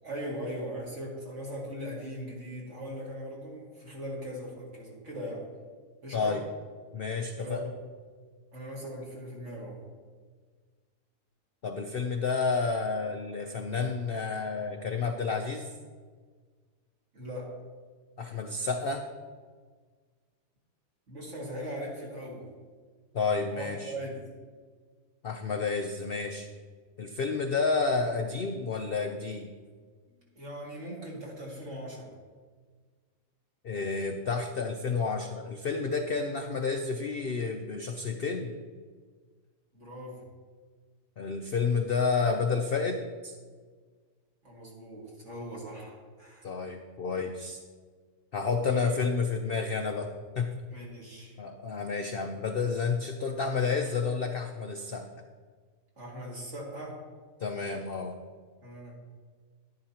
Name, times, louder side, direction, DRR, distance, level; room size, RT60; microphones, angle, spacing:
voice 1, 0.0-5.5 6.0-6.4 7.4-7.7 8.5-9.9 17.1-17.5 21.1-22.5 23.5-24.4 30.4-32.1 39.7-40.2 44.4-46.5 48.7-49.0 50.7-51.3 56.0-57.0 58.6-58.9, equal, 50° right, -4 dB, 2.5 m, -39 dB
voice 2, 6.9-7.6 11.6-15.7 18.2-19.0 23.1-23.9 25.2-26.5 27.0-29.5 33.6-38.5 41.2-43.4 46.4-47.6 48.3-50.1 50.4-50.6 51.4-55.0 57.4-58.2, left 4 dB, 65° left, 4 dB, 0.5 m, -30 dB
11.0 x 10.5 x 2.9 m, 1.6 s
omnidirectional pair, 1.7 m